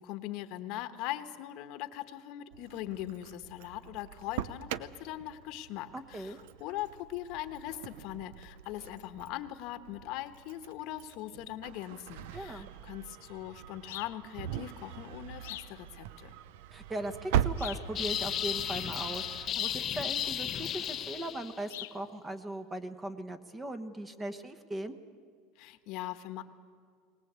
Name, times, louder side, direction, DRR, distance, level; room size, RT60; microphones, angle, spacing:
voice 1, 0.0-16.3 25.6-26.4, left 13 dB, 60° left, 10 dB, 1.2 m, -41 dB
Engine starting, 2.5-19.5, right 10 dB, 80° right, 0.7 m, -40 dB
voice 2, 5.9-6.4 12.3-12.7 16.7-25.0, right 1 dB, 15° right, 10 dB, 1.1 m, -39 dB
sound 1, 13.9-14.2 15.4-15.8 17.6-17.9 19.5-19.9 21.7-22.0, left 16 dB, 90° left, 0.5 m, -43 dB
sound 2, 18.0-21.6, left 10 dB, 35° left, 0.7 m, -34 dB
21.0 x 19.5 x 8.2 m, 2.2 s
supercardioid pair, 135°, 0 cm